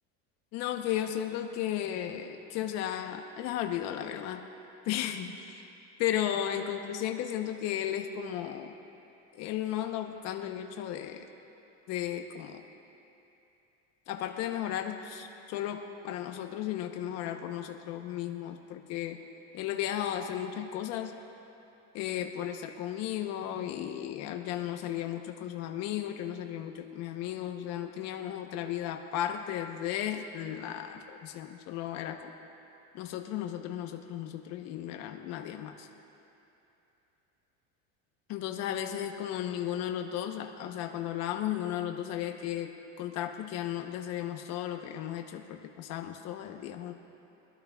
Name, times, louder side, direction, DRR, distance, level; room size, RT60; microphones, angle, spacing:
voice 1, 0.5-4.4 4.8-5.6 6.0-8.7 9.3-11.3 11.9-12.6 14.1-19.2 19.5-21.1 21.9-32.3 32.9-35.9 38.3-42.7 43.0-46.9, left 11 dB, 45° left, 4 dB, 1.0 m, -35 dB
24.0 x 12.5 x 2.5 m, 2.9 s
cardioid pair, 165°, 38 cm